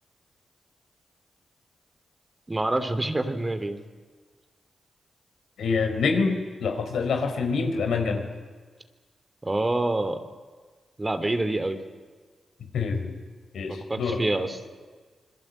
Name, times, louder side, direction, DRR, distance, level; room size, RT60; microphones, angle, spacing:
voice 1, 2.5-3.8 9.4-10.2 11.0-11.8 13.7-14.6, right 2 dB, 25° right, 9 dB, 3.1 m, -27 dB
voice 2, 5.6-8.2 12.6-13.1 13.5-14.2, left 4 dB, 85° left, 4 dB, 4.3 m, -26 dB
26.5 x 21.5 x 9.0 m, 1.4 s
cardioid pair, 50°, 0 cm